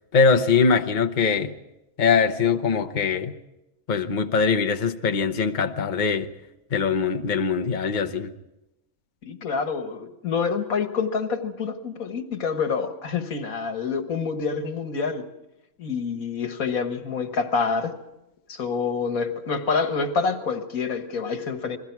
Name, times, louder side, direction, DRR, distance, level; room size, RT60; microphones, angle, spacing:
voice 1, 0.1-1.5 2.0-3.3 3.9-6.3 6.7-8.3, left 5 dB, 40° left, 1.0 m, -22 dB
voice 2, 9.2-15.3 15.8-18.0 18.5-21.8, left 5 dB, 80° left, 1.9 m, -27 dB
29.5 x 21.5 x 4.7 m
omnidirectional pair, 1.4 m